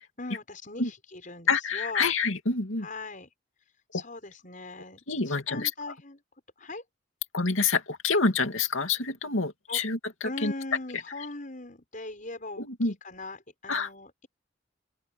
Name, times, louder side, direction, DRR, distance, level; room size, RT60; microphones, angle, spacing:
voice 1, 0.2-2.1 2.8-6.2 6.6-6.8 9.7-9.8 10.2-14.3, left 2 dB, 40° left, 6.7 m, -40 dB
voice 2, 1.5-2.9 5.1-5.7 7.3-10.0 10.4-10.5 12.6-12.9 13.7-13.9, left 4 dB, 85° left, 2.6 m, -27 dB
open air
head